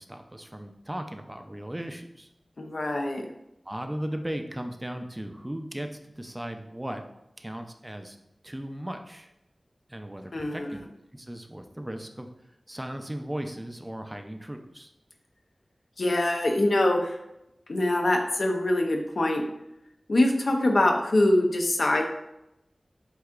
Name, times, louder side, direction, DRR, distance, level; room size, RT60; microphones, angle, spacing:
voice 1, 0.0-2.3 3.7-7.0 7.4-8.2 8.4-9.3 9.9-10.8 11.1-12.3 12.7-14.9, right 1 dB, 20° right, 5 dB, 0.5 m, -37 dB
voice 2, 2.6-3.3 10.3-10.7 16.0-17.2 17.7-19.4 20.1-22.0, left 1 dB, 75° left, 2 dB, 0.7 m, -24 dB
7.8 x 2.8 x 2.4 m, 0.85 s
wide cardioid pair, 45°, 0 cm